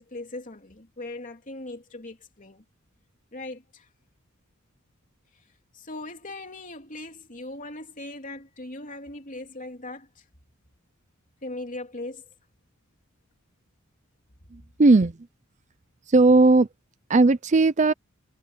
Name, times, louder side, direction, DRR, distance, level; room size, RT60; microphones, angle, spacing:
voice 1, 0.0-2.6 3.3-3.9 5.7-10.2 11.4-12.3, left 2 dB, 40° left, 3.3 m, -39 dB
voice 2, 14.5-15.2 16.1-16.7 17.1-17.9, right 3 dB, 35° right, 0.5 m, -17 dB
head